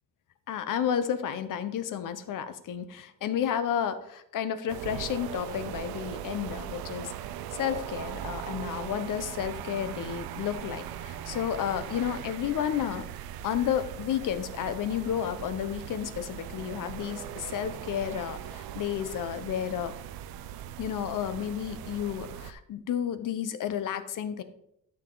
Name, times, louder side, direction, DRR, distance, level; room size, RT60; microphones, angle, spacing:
voice 1, 0.5-7.1 7.6-13.1 13.4-19.9 20.8-24.4, left 9 dB, 55° left, 11 dB, 1.1 m, -31 dB
sound 1, 4.7-22.5, right 10 dB, 70° right, 0.7 m, -39 dB
12.5 x 7.1 x 4.1 m, 0.76 s
cardioid pair, 150°, 38 cm